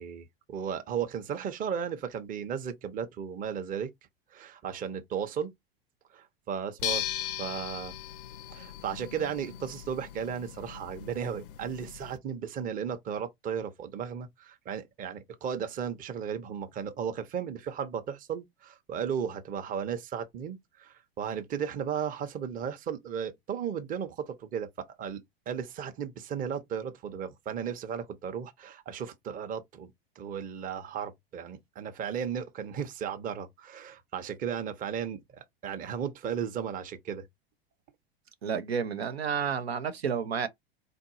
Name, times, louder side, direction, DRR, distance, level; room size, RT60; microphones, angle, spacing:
voice 1, 0.0-3.9 4.3-5.5 6.1-7.0 7.4-7.9 8.5-29.9 30.2-37.3, right 7 dB, 25° right, 0.7 m, -35 dB
sound 1, 6.8-12.2, left 11 dB, 60° left, 0.5 m, -38 dB
voice 2, 38.4-40.5, right 7 dB, 80° right, 0.6 m, -30 dB
3.9 x 2.6 x 2.6 m
figure-of-eight pair, 90°, 31 cm